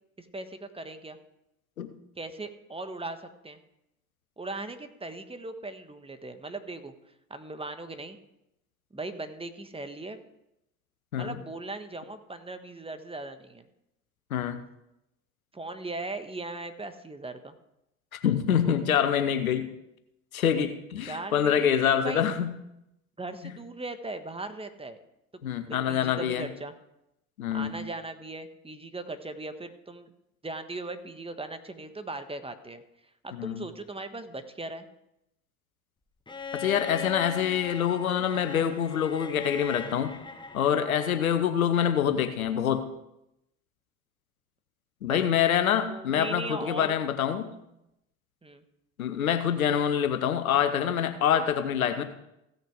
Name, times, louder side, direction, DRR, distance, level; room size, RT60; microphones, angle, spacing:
voice 1, 0.2-1.2 2.2-3.6 4.4-6.9 7.3-8.2 8.9-10.2 11.1-13.6 15.5-17.5 21.0-22.2 23.2-25.0 25.7-26.7 27.5-30.1 30.4-32.8 33.2-34.9 45.1-45.3 45.9-46.9 48.4-48.6, right 2 dB, 15° right, 9 dB, 1.3 m, -38 dB
voice 2, 18.1-19.7 20.3-22.5 25.4-26.5 27.4-27.8 33.3-33.6 36.5-40.1 40.5-42.9 45.0-47.5 49.0-52.0, left 9 dB, 90° left, 10 dB, 0.9 m, -26 dB
Bowed string instrument, 36.3-41.3 42.8-42.9, left 5 dB, 10° left, 1.3 m, -40 dB
16.0 x 6.6 x 4.8 m, 0.85 s
hypercardioid pair, 65°, 41 cm